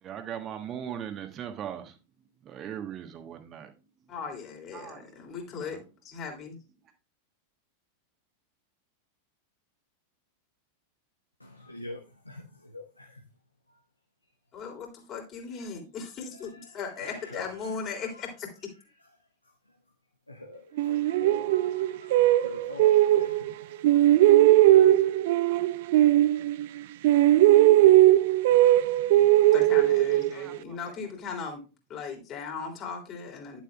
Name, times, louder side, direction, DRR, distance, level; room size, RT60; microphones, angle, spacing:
voice 1, 0.0-2.0 2.4-3.7 4.0-4.1 4.7-5.2 5.5-5.9 30.3-30.9, right 9 dB, 30° right, 1.3 m, -39 dB
voice 2, 4.1-6.6 14.5-18.7 29.5-31.6 31.9-33.6, left 5 dB, 30° left, 3.2 m, -38 dB
voice 3, 11.4-13.2 13.7-13.8 16.3-18.3 19.0-19.1 19.4-19.8 20.3-24.2, left 2 dB, 85° left, 1.0 m, -45 dB
sound 1, 20.8-23.5 23.8-26.8 27.0-30.6, right 14 dB, 50° right, 0.4 m, -19 dB
11.0 x 7.3 x 2.4 m
figure-of-eight pair, 90°, 0 cm